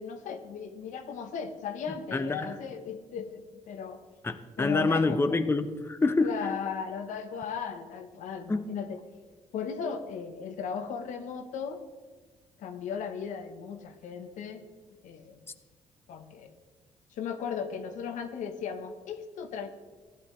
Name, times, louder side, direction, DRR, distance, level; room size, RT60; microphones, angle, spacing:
voice 1, 0.0-4.0 4.6-5.4 6.2-9.0 9.5-11.8 12.6-14.6 15.0-15.5 16.1-16.5 17.1-19.7, left 6 dB, 80° left, 7 dB, 1.0 m, -36 dB
voice 2, 2.1-2.5 4.2-6.3 8.5-8.7, left 3 dB, 20° left, 9 dB, 0.7 m, -26 dB
14.5 x 10.5 x 3.2 m, 1.4 s
supercardioid pair, 70°, 13 cm